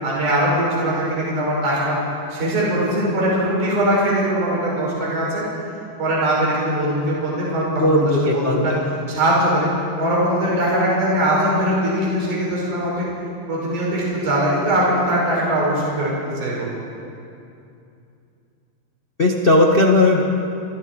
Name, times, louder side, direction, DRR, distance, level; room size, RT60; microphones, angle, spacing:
voice 1, 0.0-2.0 2.3-5.4 6.0-8.7 9.1-9.7 10.0-13.1 13.5-16.7, right 1 dB, 60° right, -5 dB, 6.6 m, -21 dB
voice 2, 7.8-8.8 19.2-20.2, left 2 dB, 50° left, -1 dB, 0.6 m, -16 dB
29.0 x 24.0 x 4.5 m, 2.6 s
omnidirectional pair, 4.1 m